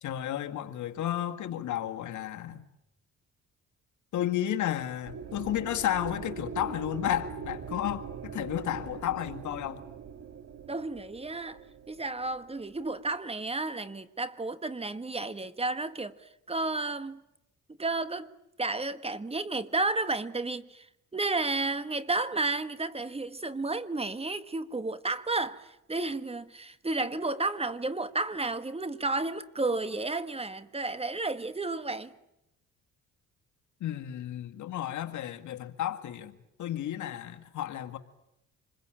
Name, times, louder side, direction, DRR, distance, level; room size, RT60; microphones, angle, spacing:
voice 1, 0.0-2.6 4.1-9.8 33.8-38.0, left 11 dB, 75° left, 1.9 m, -32 dB
sound 1, 5.0-13.2, right 6 dB, 55° right, 1.9 m, -42 dB
voice 2, 10.7-11.6 11.9-17.2 17.8-18.3 18.6-32.1, right 3 dB, 20° right, 1.3 m, -32 dB
27.0 x 22.0 x 9.0 m
cardioid pair, 90°, 30 cm